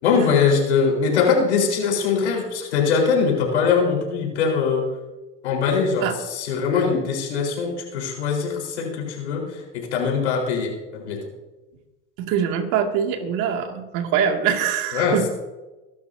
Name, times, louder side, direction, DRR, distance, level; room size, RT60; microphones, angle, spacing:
voice 1, 0.0-4.9 5.4-11.2 14.9-15.3, left 5 dB, 90° left, 0 dB, 4.5 m, -22 dB
voice 2, 12.2-15.2, right 8 dB, 65° right, 3 dB, 2.5 m, -23 dB
23.5 x 12.0 x 2.8 m, 1.1 s
hypercardioid pair, 95°, 33 cm